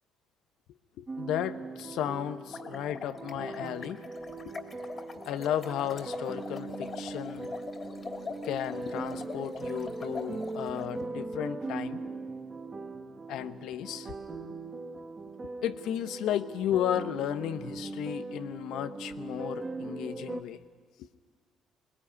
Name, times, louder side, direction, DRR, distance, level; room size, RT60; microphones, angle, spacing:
voice 1, 1.0-4.0 4.5-4.6 5.3-7.5 8.4-12.0 13.3-14.4 15.6-20.6 21.0-21.1, left 11 dB, 70° left, 12 dB, 0.9 m, -34 dB
sound 1, 1.1-20.4, right 3 dB, 30° right, 2.0 m, -40 dB
sound 2, 2.4-10.9, left 4 dB, 40° left, 3.0 m, -43 dB
21.0 x 21.0 x 9.7 m, 1.5 s
hypercardioid pair, 55°, 0 cm